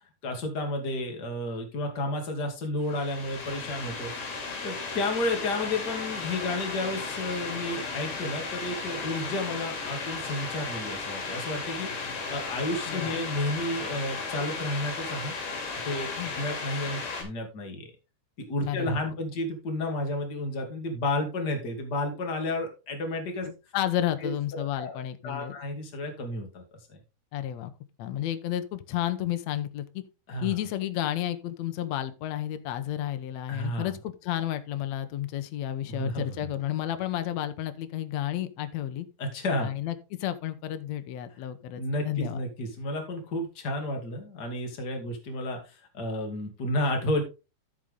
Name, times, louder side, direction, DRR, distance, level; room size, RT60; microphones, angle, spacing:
voice 1, 0.2-4.1 4.6-15.3 15.8-17.9 18.4-23.5 24.2-25.0 25.2-26.6 26.9-27.0 30.3-30.5 33.5-33.9 35.8-36.4 39.2-39.8 41.8-47.2, left 1 dB, 30° left, 2 dB, 2.5 m, -32 dB
sound 1, 2.8-17.2, left 4 dB, 70° left, 4.7 m, -35 dB
voice 2, 12.9-13.2 16.2-16.3 18.6-19.0 23.4-25.6 27.3-27.7 28.0-30.0 30.4-39.1 39.6-42.4, left 12 dB, 90° left, 10 dB, 1.5 m, -32 dB
14.0 x 5.4 x 3.7 m, 0.30 s
omnidirectional pair, 4.5 m